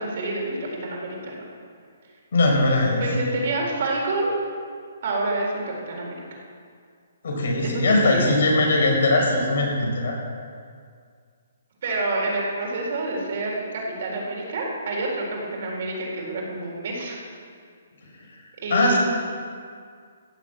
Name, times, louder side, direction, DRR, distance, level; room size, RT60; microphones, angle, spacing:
voice 1, 0.0-1.4 3.0-4.4 5.0-6.2 7.6-8.3 11.8-17.2 18.6-19.0, right 2 dB, 45° right, -2 dB, 4.0 m, -28 dB
voice 2, 2.3-3.0 7.2-10.2 18.7-19.0, left 2 dB, 65° left, -1 dB, 4.8 m, -20 dB
16.0 x 7.6 x 8.1 m, 2.1 s
hypercardioid pair, 170°, 0 cm